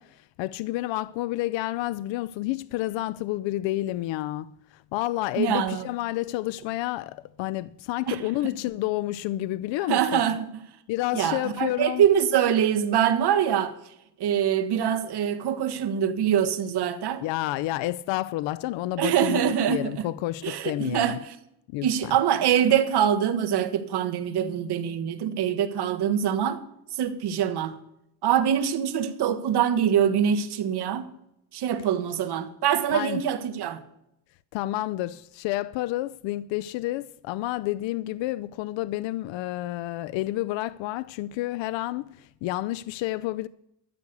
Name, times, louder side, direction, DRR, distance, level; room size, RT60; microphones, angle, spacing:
voice 1, 0.0-10.2 10.9-12.1 17.2-21.2 21.7-22.2 32.9-33.2 34.5-43.5, left 16 dB, 85° left, 0.5 m, -30 dB
voice 2, 5.4-5.8 8.1-8.2 9.9-10.4 11.1-13.7 14.2-17.2 19.0-19.9 20.4-21.1 21.8-26.6 27.0-27.8 28.2-31.1 31.5-33.8, right 9 dB, 60° right, 1.4 m, -24 dB
13.0 x 8.4 x 6.7 m
cardioid pair, 120°, 44 cm